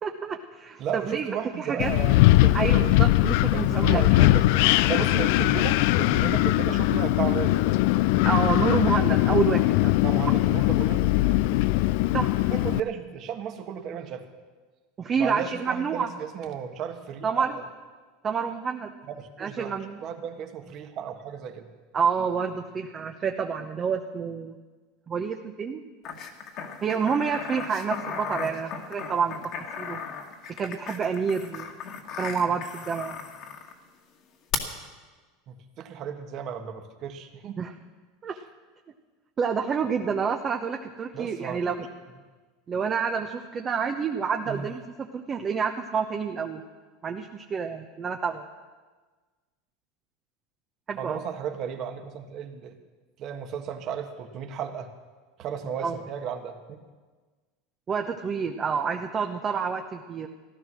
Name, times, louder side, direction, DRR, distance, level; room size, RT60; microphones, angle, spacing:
voice 1, 0.0-1.3 1.6-1.9 2.5-4.0 8.2-9.9 12.1-12.3 15.0-16.1 17.2-17.5 18.2-18.9 19.4-20.0 21.9-24.6 25.1-25.8 26.8-29.4 29.8-30.0 30.5-31.7 32.2-33.2 37.6-37.7 38.2-38.3 39.4-41.9 42.7-46.6 47.0-48.5 50.9-51.2 55.8-56.0 57.9-60.3, right 6 dB, 30° right, 4 dB, 1.0 m, -28 dB
voice 2, 0.8-3.0 3.5-7.6 10.0-11.4 12.5-14.3 15.2-17.6 19.1-19.7 20.0-21.7 28.4-28.5 35.5-37.6 38.3-38.4 41.1-41.9 44.4-44.7 51.0-52.8 53.2-54.9 55.4-56.8, right 8 dB, 50° right, 5 dB, 1.6 m, -34 dB
Wind, 1.8-12.8, left 17 dB, 70° left, 0.4 m, -21 dB
sound 1, 26.0-33.7 34.5-34.6, left 7 dB, 50° left, 1.9 m, -36 dB
15.5 x 12.5 x 6.3 m, 1.4 s
hypercardioid pair, 105°, 0 cm